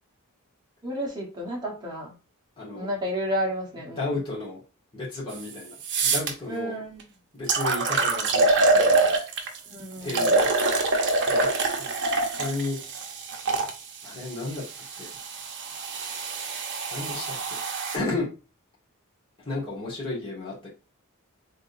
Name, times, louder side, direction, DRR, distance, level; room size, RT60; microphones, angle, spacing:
voice 1, 0.8-2.1 2.7-4.1 6.5-7.0 9.7-10.3, equal, 20° right, 1.3 m, -31 dB
voice 2, 2.6-2.9 4.0-4.6 4.9-6.8 7.3-9.2 10.0-10.5 11.3-11.5 11.7-12.8 14.0-14.6 15.0-15.1 16.9-17.6 17.9-18.3 19.4-20.7, left 2 dB, 25° left, 1.9 m, -33 dB
sound 1, 5.3-5.4 5.8-6.3 7.0-7.1 7.5-9.6 10.1-13.7 14.5-18.0, right 3 dB, 55° right, 0.8 m, -25 dB
3.8 x 3.7 x 2.5 m
head